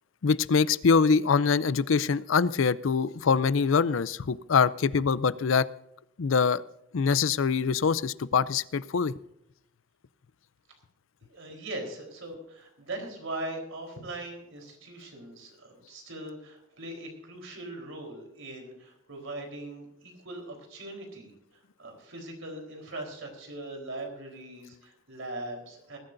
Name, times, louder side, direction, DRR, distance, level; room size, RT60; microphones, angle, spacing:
voice 1, 0.2-5.7 6.2-6.6 6.9-9.1, left 5 dB, 70° left, 18 dB, 0.5 m, -24 dB
voice 2, 11.3-21.3 21.8-26.0, right 1 dB, 75° right, 3 dB, 4.0 m, -40 dB
20.5 x 13.0 x 2.6 m, 0.82 s
head